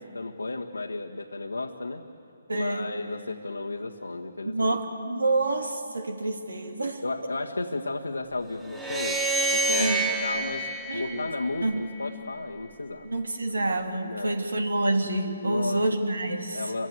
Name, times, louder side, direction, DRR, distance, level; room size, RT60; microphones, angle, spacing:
voice 1, 0.0-2.0 2.5-4.8 7.0-9.2 9.5-10.7 10.9-13.1 13.5-13.6 14.0-14.4 15.4-15.9 16.5-16.9, left 2 dB, 80° left, -1 dB, 1.5 m, -33 dB
voice 2, 2.5-2.9 4.4-7.0 9.8-10.0 10.9-11.3 11.6-11.8 13.0-16.6, right 2 dB, 75° right, 5 dB, 3.0 m, -27 dB
sound 1, 8.7-12.0, right 2 dB, 10° right, 1.8 m, -28 dB
29.5 x 24.5 x 8.1 m, 2.7 s
figure-of-eight pair, 140°, 0 cm